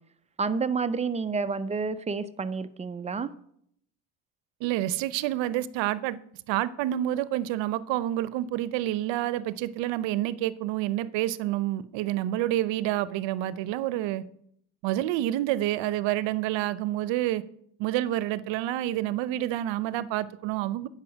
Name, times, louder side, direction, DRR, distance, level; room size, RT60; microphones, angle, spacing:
voice 1, 0.4-3.3, right 4 dB, 15° right, 12 dB, 0.3 m, -29 dB
voice 2, 4.6-6.2 6.5-14.2 14.8-17.4 17.8-20.9, right 14 dB, 75° right, 16 dB, 0.7 m, -28 dB
8.9 x 5.6 x 6.2 m, 0.70 s
cardioid pair, 110°, 45 cm